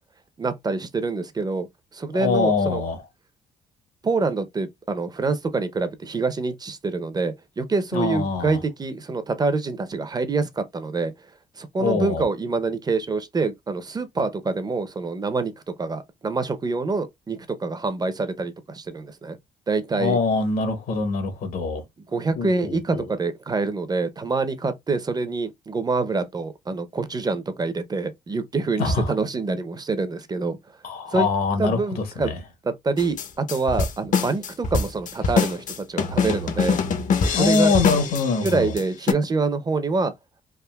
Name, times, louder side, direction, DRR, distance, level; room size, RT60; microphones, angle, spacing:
voice 1, 0.4-1.7 1.9-2.8 4.0-11.1 11.6-15.5 15.8-19.4 19.7-20.2 22.1-30.6 31.1-31.3 31.6-32.3 32.6-36.8 37.3-37.7 38.4-40.1, right 3 dB, 25° right, 0.6 m, -26 dB
voice 2, 2.1-3.0 7.9-8.6 11.8-12.2 19.9-21.8 22.3-23.1 28.8-29.1 30.8-32.4 37.3-38.7, left 4 dB, 75° left, 1.1 m, -24 dB
sound 1, 33.0-38.8 39.1-39.2, left 5 dB, 55° left, 0.7 m, -23 dB
3.6 x 2.4 x 2.2 m
cardioid pair, 85°, 16 cm